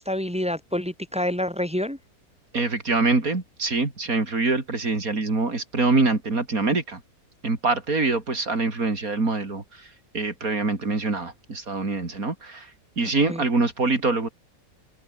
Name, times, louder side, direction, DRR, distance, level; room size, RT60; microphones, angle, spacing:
voice 1, 0.0-2.0 13.3-13.4, left 1 dB, 5° right, 2.4 m, -27 dB
voice 2, 2.5-7.0 7.4-12.7 13.0-14.3, right 3 dB, 70° right, 4.0 m, -24 dB
open air
omnidirectional pair, 1.5 m